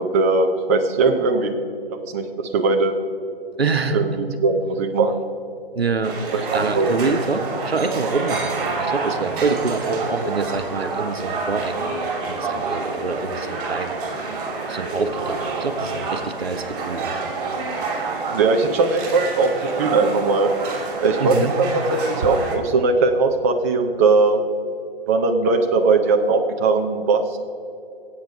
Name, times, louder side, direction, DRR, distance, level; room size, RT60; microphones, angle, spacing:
voice 1, 0.0-1.5 2.1-2.9 3.9-5.2 6.3-6.9 18.3-20.5 21.0-24.4 25.1-27.4, right 3 dB, 15° right, 4 dB, 0.5 m, -19 dB
voice 2, 3.6-4.0 5.7-13.9 14.7-17.3 21.2-21.6, right 4 dB, 80° right, 9 dB, 1.1 m, -26 dB
sound 1, 6.0-22.6, right 3 dB, 40° right, 2.8 m, -28 dB
20.5 x 8.3 x 5.4 m, 2.7 s
figure-of-eight pair, 135°, 30 cm